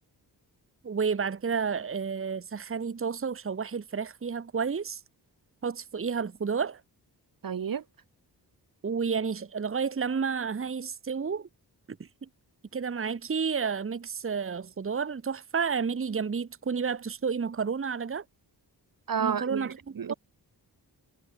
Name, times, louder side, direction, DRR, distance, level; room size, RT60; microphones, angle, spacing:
voice 1, 0.8-5.0 5.6-6.8 8.8-11.5 11.9-12.3 12.7-18.2 19.2-19.8 20.1-20.2, right 6 dB, 30° right, 1.1 m, -31 dB
voice 2, 7.4-7.8 19.1-20.1, right 7 dB, 55° right, 1.2 m, -31 dB
wide cardioid pair, 105°, 40 cm